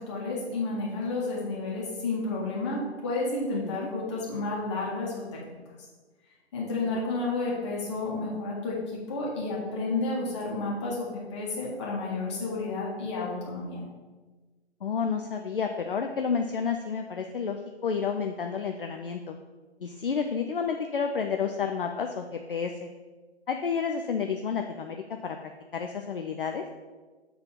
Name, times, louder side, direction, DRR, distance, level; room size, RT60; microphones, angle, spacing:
voice 1, 0.0-5.6 6.5-13.8, left 3 dB, 25° left, -4 dB, 1.6 m, -31 dB
voice 2, 3.5-3.9 6.8-7.0 14.8-17.6 17.8-19.4 19.8-22.9 23.5-25.4 25.7-26.6, left 6 dB, 55° left, 5 dB, 0.5 m, -30 dB
6.9 x 3.4 x 5.8 m, 1.3 s
figure-of-eight pair, 140°, 33 cm